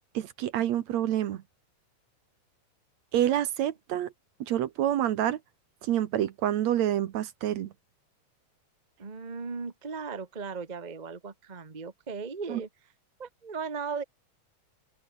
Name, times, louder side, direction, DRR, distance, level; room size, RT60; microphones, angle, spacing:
voice 1, 0.1-1.4 3.1-4.1 4.4-5.4 5.8-7.7 12.5-12.6, right 11 dB, 65° right, 2.1 m, -27 dB
voice 2, 9.0-12.7 13.2-14.0, right 5 dB, 25° right, 0.9 m, -37 dB
open air
omnidirectional pair, 3.7 m